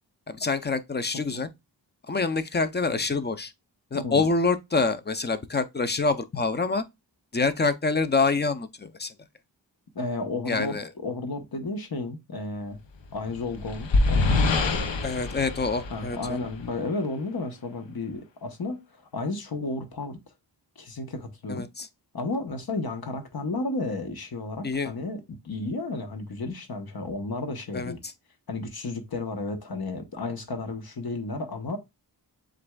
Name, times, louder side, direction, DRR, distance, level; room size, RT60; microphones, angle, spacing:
voice 1, 0.3-1.5 2.1-3.5 3.9-6.8 7.3-9.1 10.5-10.9 15.0-16.4 21.5-21.9 24.6-24.9 27.7-28.1, left 4 dB, 25° left, 0.6 m, -26 dB
voice 2, 3.9-4.3 9.9-12.8 13.1-14.8 15.9-20.2 20.8-21.6 22.1-28.0 28.5-31.8, left 3 dB, 55° left, 1.1 m, -33 dB
sound 1, 13.1-16.8, left 3 dB, 90° left, 0.8 m, -25 dB
7.5 x 2.6 x 2.3 m
wide cardioid pair, 80°, 43 cm